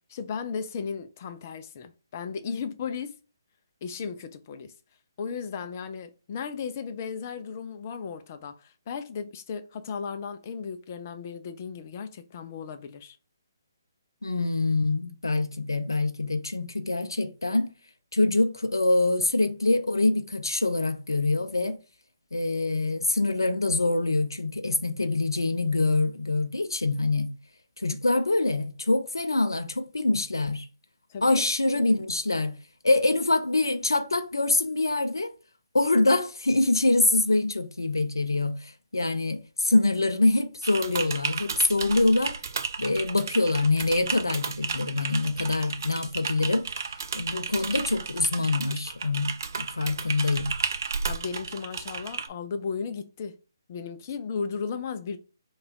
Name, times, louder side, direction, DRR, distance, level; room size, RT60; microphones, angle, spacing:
voice 1, 0.1-3.2 3.8-4.7 5.2-13.2 31.1-31.4 51.0-53.4 53.7-55.2, left 6 dB, 40° left, 0.5 m, -35 dB
voice 2, 14.2-17.7 18.1-21.8 22.3-27.3 27.8-30.7 31.2-32.6 32.8-35.3 35.7-42.4 42.8-46.7 47.1-50.5, left 2 dB, 85° left, 0.5 m, -25 dB
Typing, 40.6-52.3, right 5 dB, 55° right, 0.4 m, -33 dB
3.3 x 2.4 x 3.6 m
figure-of-eight pair, 140°, 2 cm